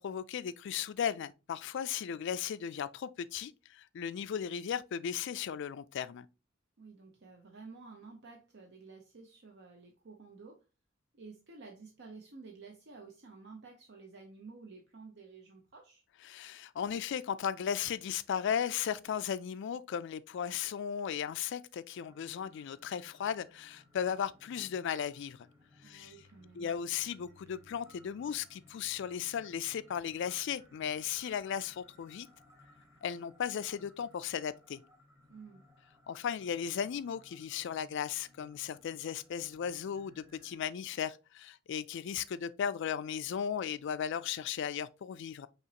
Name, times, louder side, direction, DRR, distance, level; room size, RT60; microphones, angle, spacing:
voice 1, 0.0-6.3 16.2-25.4 25.8-26.1 26.6-32.3 33.0-34.8 36.1-45.5, left 8 dB, 60° left, 0.3 m, -36 dB
voice 2, 6.8-10.6 11.1-16.0 25.8-26.7 35.3-35.7, right 4 dB, 60° right, 0.7 m, -52 dB
sound 1, 22.0-40.7, left 2 dB, 15° right, 1.1 m, -62 dB
5.6 x 3.0 x 2.8 m
head